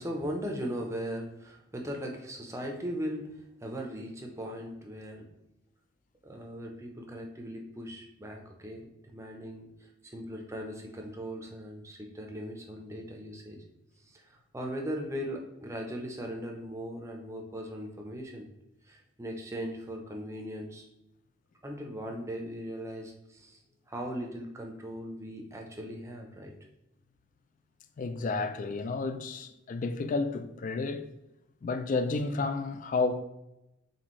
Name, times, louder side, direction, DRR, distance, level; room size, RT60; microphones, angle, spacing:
voice 1, 0.0-5.3 6.2-13.6 14.0-18.5 18.9-20.9 21.6-23.6 23.9-26.5, equal, 15° right, 0.6 m, -39 dB
voice 2, 28.0-31.1 31.6-33.2, left 3 dB, 40° left, 0.3 m, -31 dB
4.2 x 3.5 x 3.0 m
head